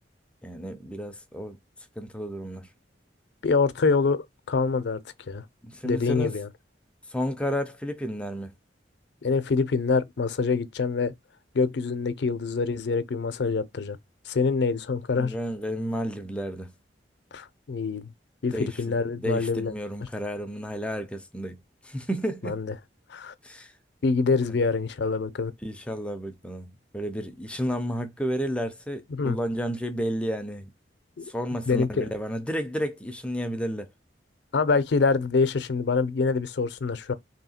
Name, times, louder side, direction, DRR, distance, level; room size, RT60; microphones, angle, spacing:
voice 1, 0.4-1.6 2.0-2.7 5.6-6.4 7.1-8.5 15.2-16.7 18.5-22.6 23.4-23.7 25.6-30.7 31.3-33.9, equal, 5° left, 0.4 m, -32 dB
voice 2, 3.4-5.0 5.3-5.4 5.8-6.5 9.2-11.1 11.5-14.0 14.3-15.3 17.3-18.1 18.4-19.7 22.4-22.7 23.1-23.3 24.0-25.5 29.1-29.4 31.2-31.3 31.7-32.1 34.5-37.1, left 4 dB, 65° left, 0.5 m, -25 dB
3.0 x 2.8 x 4.2 m
head